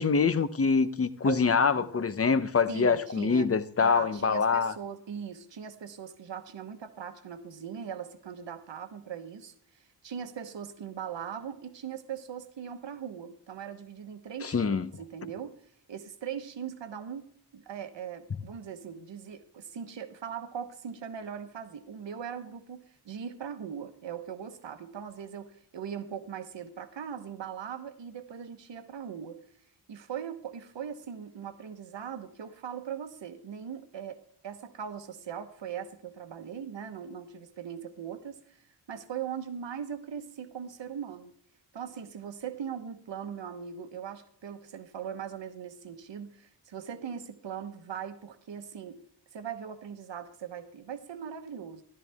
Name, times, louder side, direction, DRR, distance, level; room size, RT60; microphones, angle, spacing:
voice 1, 0.0-4.7 14.4-14.9, left 5 dB, 35° left, 0.7 m, -25 dB
voice 2, 1.2-1.9 2.7-15.6 15.9-29.4 29.9-38.6 38.9-41.3 41.7-49.0 49.3-51.8, right 8 dB, 85° right, 1.2 m, -40 dB
14.0 x 12.5 x 3.5 m
wide cardioid pair, 140°, 43 cm